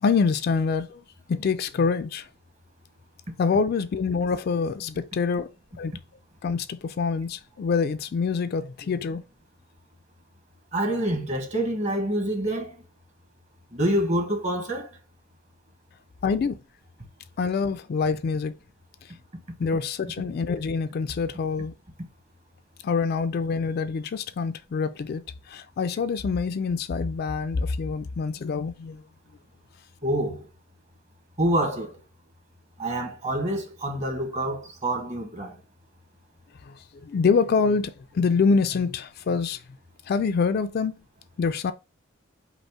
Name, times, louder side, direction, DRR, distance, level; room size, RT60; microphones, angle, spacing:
voice 1, 0.0-1.0 1.3-2.3 3.4-5.9 6.4-9.2 16.2-16.6 17.4-18.5 19.6-21.7 22.8-29.0 36.7-36.8 37.0-39.6 40.1-41.0 41.4-41.7, left 5 dB, 50° left, 0.3 m, -25 dB
voice 2, 10.7-12.8 13.7-15.0 30.0-30.4 31.4-32.0 32.8-35.6, right 1 dB, 35° right, 1.1 m, -27 dB
5.2 x 2.1 x 4.8 m
head